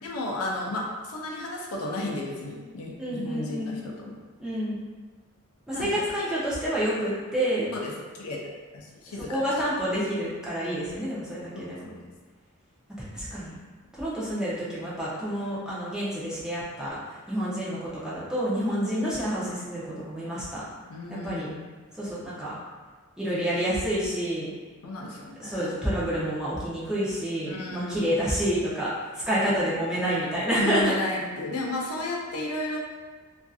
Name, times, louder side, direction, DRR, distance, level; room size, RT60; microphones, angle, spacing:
voice 1, 0.0-4.1 5.7-6.1 7.7-8.4 8.7-9.4 11.5-12.1 20.9-21.6 24.8-25.7 27.5-28.1 30.5-32.8, left 2 dB, 70° left, -2 dB, 0.5 m, -33 dB
voice 2, 3.0-3.7 4.4-4.8 5.7-7.7 9.3-11.9 13.1-13.6 13.9-17.0 17.3-20.6 21.2-21.5 22.0-22.5 23.2-24.5 25.4-30.9, equal, 5° right, -9 dB, 0.6 m, -28 dB
2.6 x 2.4 x 2.3 m, 1.4 s
head